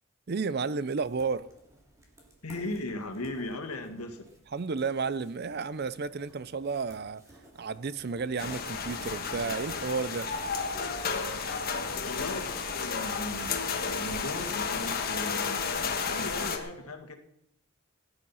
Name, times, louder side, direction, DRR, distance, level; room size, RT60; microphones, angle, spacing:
voice 1, 0.3-1.5 4.5-7.3 7.5-10.3, right 4 dB, 45° right, 0.5 m, -32 dB
sound 1, 1.0-15.8, right 1 dB, 15° right, 2.5 m, -54 dB
voice 2, 2.4-4.3 12.0-17.1, left 2 dB, 85° left, 1.8 m, -38 dB
sound 2, 8.4-16.6, left 5 dB, 45° left, 1.4 m, -32 dB
17.5 x 9.8 x 5.6 m
head